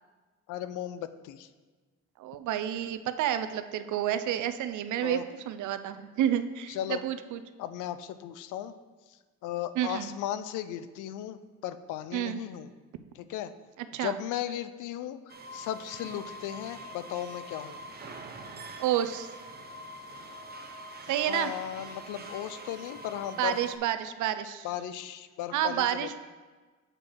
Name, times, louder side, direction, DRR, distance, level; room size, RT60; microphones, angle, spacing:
voice 1, 0.5-1.5 5.0-5.2 6.7-7.0 7.6-8.7 9.4-12.7 13.2-13.5 14.0-17.8 21.3-23.6 24.6-26.2, left 11 dB, 85° left, 12 dB, 0.5 m, -36 dB
voice 2, 2.2-5.2 5.5-7.4 9.8-10.1 12.1-12.4 13.9-14.2 18.8-19.3 21.1-21.5 23.4-24.7 25.5-26.2, right 11 dB, 75° right, 11 dB, 0.5 m, -29 dB
sound 1, 15.3-23.8, right 1 dB, 30° right, 0.8 m, -44 dB
7.5 x 4.7 x 4.5 m, 1.4 s
cardioid pair, 90°, 30 cm